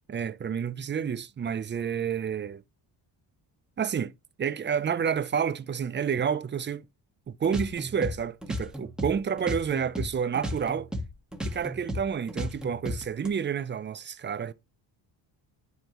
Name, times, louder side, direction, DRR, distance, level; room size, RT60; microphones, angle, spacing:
voice 1, 0.1-2.6 3.8-4.1 4.4-6.8 7.3-10.9 11.4-14.5, right 7 dB, 25° right, 0.4 m, -29 dB
sound 1, 7.4-10.1 10.3-13.3, equal, ahead, 1.4 m, -34 dB
9.5 x 4.4 x 2.9 m
cardioid pair, 100°, 48 cm